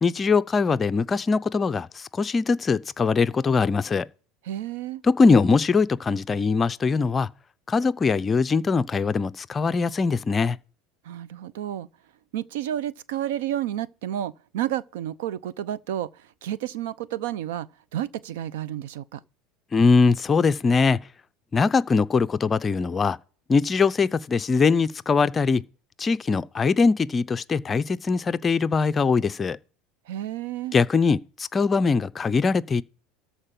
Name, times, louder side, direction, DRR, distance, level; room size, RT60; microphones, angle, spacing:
voice 1, 0.0-4.1 5.0-7.3 7.7-10.6 19.7-21.0 21.5-23.2 23.5-25.6 26.0-29.6 30.7-32.8, left 4 dB, 20° left, 0.5 m, -22 dB
voice 2, 4.4-5.0 11.0-11.9 12.3-16.1 16.4-19.2 30.1-30.8, right 12 dB, 90° right, 0.6 m, -31 dB
13.5 x 4.5 x 7.5 m
supercardioid pair, 130°, 0 cm